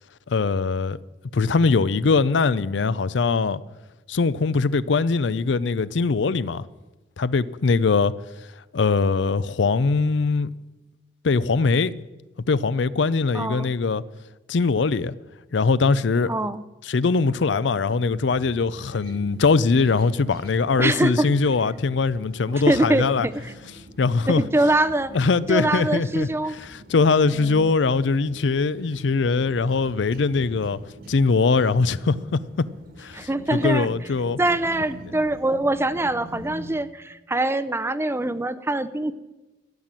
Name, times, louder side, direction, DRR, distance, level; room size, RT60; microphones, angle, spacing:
voice 1, 0.3-1.0 1.3-3.6 4.1-6.6 7.2-8.1 8.7-10.5 11.2-11.9 12.5-14.0 14.5-15.1 15.5-16.3 16.8-23.3 24.0-24.4 25.1-30.8 31.1-32.7 33.0-34.4, left 4 dB, 75° left, 0.5 m, -21 dB
voice 2, 13.3-13.7 16.3-16.6 20.8-21.3 22.5-23.5 24.3-25.2 25.5-26.5 27.3-27.7 33.1-33.9 34.4-39.1, right 2 dB, 15° right, 0.5 m, -24 dB
sound 1, 18.0-36.7, equal, 55° right, 1.5 m, -45 dB
13.0 x 10.5 x 7.5 m
head